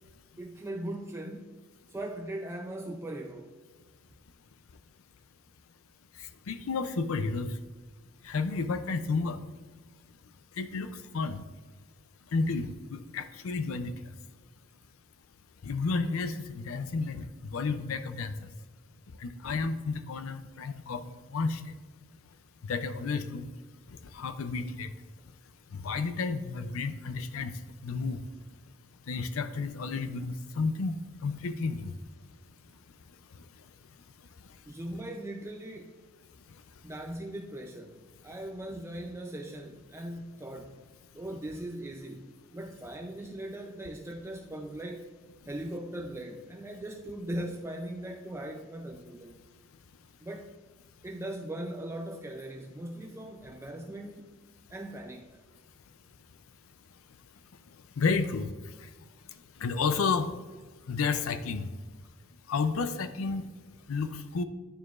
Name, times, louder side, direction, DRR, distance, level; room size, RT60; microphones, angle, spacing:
voice 1, 0.4-1.5 1.9-3.5 34.7-35.9 36.8-40.8 41.1-45.2 45.4-49.3 50.2-50.5 51.0-54.4 54.7-55.4, right 1 dB, 15° right, 1 dB, 0.4 m, -39 dB
voice 2, 6.5-7.5 8.2-9.4 10.6-10.9 11.1-11.4 12.3-13.9 15.6-18.5 19.2-21.0 21.3-21.6 22.7-23.5 24.1-24.9 25.7-27.5 27.8-28.2 29.1-30.9 31.2-31.9 58.0-58.5 59.6-60.3 60.9-61.7 62.5-63.4 63.9-64.4, left 4 dB, 85° left, 10 dB, 0.5 m, -31 dB
11.5 x 4.7 x 2.4 m, 1.3 s
head